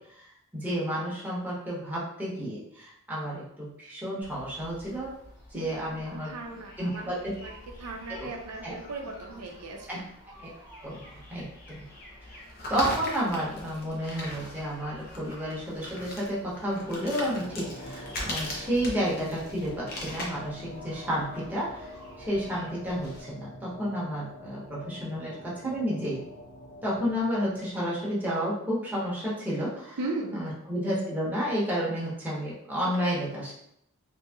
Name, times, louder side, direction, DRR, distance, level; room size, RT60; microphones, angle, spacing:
voice 1, 0.2-5.1 5.5-6.3 6.8-7.1 8.2-8.3 8.6-8.7 9.9-10.0 10.4-10.5 10.8-11.8 12.3-12.4 12.7-21.9 22.2-26.2 26.8-30.0 30.3-33.5, equal, 10° right, -7 dB, 0.9 m, -31 dB
sound 1, 4.2-23.2, left 1 dB, 45° left, 0.7 m, -41 dB
voice 2, 5.5-7.1 7.4-7.5 7.8-10.0 30.0-30.4, right 2 dB, 80° right, 1 dB, 0.5 m, -37 dB
sound 2, 16.4-28.9, left 1 dB, 90° left, 1.0 m, -46 dB
2.9 x 2.6 x 2.3 m, 0.73 s
head